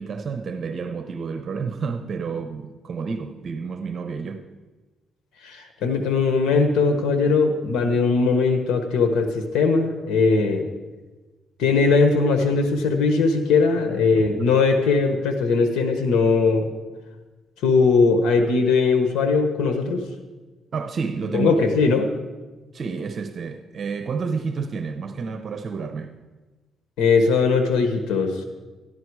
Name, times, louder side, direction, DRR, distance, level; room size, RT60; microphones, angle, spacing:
voice 1, 0.0-4.5 14.2-14.3 20.7-21.6 22.7-26.1, right 5 dB, 50° right, 0.8 m, -30 dB
voice 2, 5.4-10.7 11.6-16.7 17.6-20.0 21.3-22.1 27.0-28.4, left 4 dB, 85° left, 1.2 m, -20 dB
14.0 x 11.5 x 4.8 m
cardioid pair, 90°, 0 cm